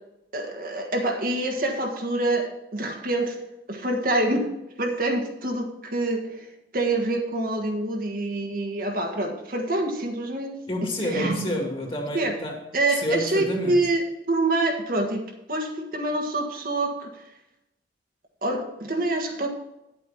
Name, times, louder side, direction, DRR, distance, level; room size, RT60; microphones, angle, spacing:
voice 1, 0.3-3.4 3.7-4.5 4.8-6.5 6.7-10.6 11.0-11.5 12.1-12.3 12.7-15.2 15.5-17.2 18.4-19.5, right 2 dB, 50° right, 2 dB, 1.5 m, -26 dB
voice 2, 10.7-12.6 12.9-13.8, equal, 30° left, 1 dB, 2.3 m, -29 dB
9.8 x 8.3 x 4.2 m, 0.90 s
head